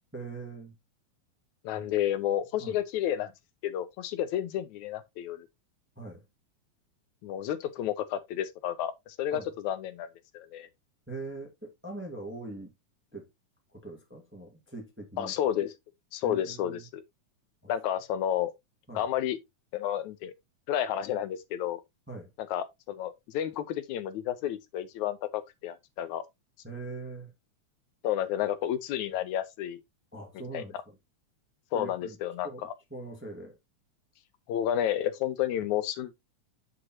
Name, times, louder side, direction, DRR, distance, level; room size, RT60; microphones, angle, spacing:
voice 1, 0.1-0.7 1.7-1.9 2.6-2.8 5.9-6.2 9.3-9.5 11.1-12.7 13.1-13.3 13.7-15.3 16.2-16.9 17.6-17.7 18.9-19.0 22.1-22.3 26.6-27.3 30.1-31.0 31.7-32.2 32.4-33.6 35.5-35.6, right 3 dB, 5° right, 1.4 m, -42 dB
voice 2, 1.6-3.3 3.6-5.5 7.2-10.1 10.3-10.7 15.2-15.7 16.1-17.0 17.7-18.5 19.0-19.4 19.7-20.3 20.7-21.8 22.5-26.2 28.0-29.8 30.5-30.6 31.7-32.7 34.5-36.1, left 11 dB, 85° left, 2.2 m, -31 dB
8.1 x 6.5 x 2.9 m
omnidirectional pair, 3.4 m